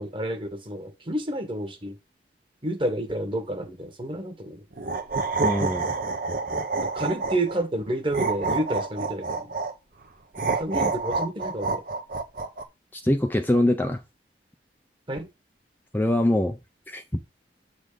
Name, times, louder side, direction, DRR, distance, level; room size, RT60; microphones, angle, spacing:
voice 1, 0.0-1.9 2.6-4.6 6.9-9.5 10.5-11.8 15.1-15.3, right 1 dB, 30° right, 1.6 m, -29 dB
sound 1, 4.7-7.6 8.1-9.7 10.3-12.6, right 4 dB, 55° right, 1.1 m, -28 dB
voice 2, 5.4-5.9 12.9-14.0 15.9-16.6 16.9-17.0, left 1 dB, 10° left, 0.6 m, -23 dB
7.8 x 4.2 x 5.0 m
head